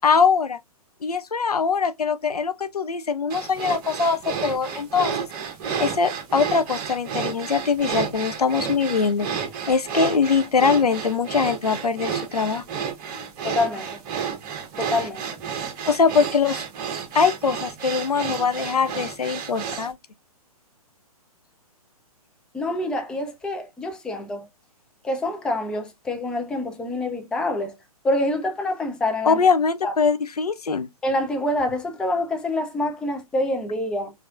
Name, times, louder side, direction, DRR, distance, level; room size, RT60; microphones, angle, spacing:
voice 1, 0.0-0.6 1.0-5.1 5.8-9.3 9.7-12.6 13.1-13.3 15.9-16.6 17.1-20.0 29.2-30.9, left 5 dB, 80° left, 0.5 m, -22 dB
Breaths male faster, 3.3-19.9, right 7 dB, 30° right, 1.1 m, -31 dB
voice 2, 13.4-14.0 14.8-15.2 22.5-24.5 25.0-27.7 28.0-29.4 29.8-29.9 31.0-34.1, left 1 dB, 5° left, 0.5 m, -26 dB
4.8 x 2.6 x 2.4 m
figure-of-eight pair, 125°, 19 cm